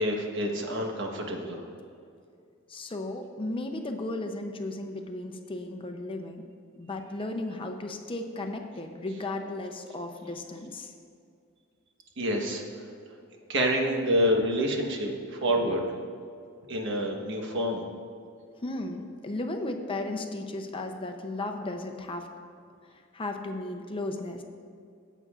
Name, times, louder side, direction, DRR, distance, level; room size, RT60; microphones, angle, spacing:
voice 1, 0.0-1.7 12.2-12.6 13.5-15.9 16.7-17.8, equal, 65° right, 1 dB, 1.2 m, -27 dB
voice 2, 2.7-6.4 6.8-10.9 18.6-22.3 23.1-24.4, left 2 dB, 25° left, 5 dB, 0.6 m, -35 dB
16.5 x 8.2 x 2.4 m, 2.3 s
head